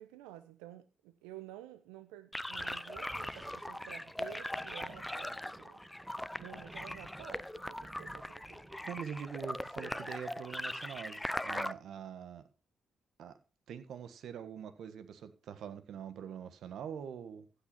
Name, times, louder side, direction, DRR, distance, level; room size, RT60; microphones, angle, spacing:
voice 1, 0.0-5.8 6.4-8.6 9.8-10.1, right 13 dB, 90° right, 0.8 m, -52 dB
sound 1, 2.3-11.7, left 1 dB, 10° left, 0.6 m, -40 dB
Thunder, 2.4-11.2, right 2 dB, 20° right, 1.2 m, -56 dB
voice 2, 8.9-12.4 13.2-13.3 13.7-17.5, right 8 dB, 70° right, 1.5 m, -44 dB
15.5 x 5.9 x 5.7 m
supercardioid pair, 55°, 0 cm